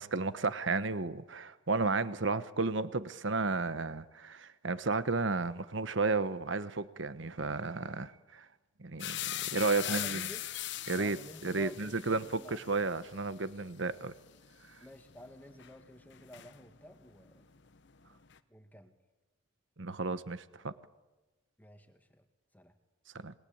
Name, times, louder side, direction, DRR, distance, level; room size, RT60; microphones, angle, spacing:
voice 1, 0.0-8.4 8.8-10.3 10.9-11.2 11.4-14.1 19.8-20.7 23.1-23.3, right 3 dB, 60° right, 14 dB, 1.1 m, -33 dB
sound 1, 9.0-17.0 17.3-18.4, left 12 dB, 55° left, 1.0 m, -41 dB
voice 2, 9.8-10.4 11.0-12.6 14.8-17.5 18.5-18.9 21.6-22.2 22.5-22.7, equal, 10° left, 7 dB, 2.0 m, -51 dB
28.0 x 21.0 x 8.8 m, 1.1 s
head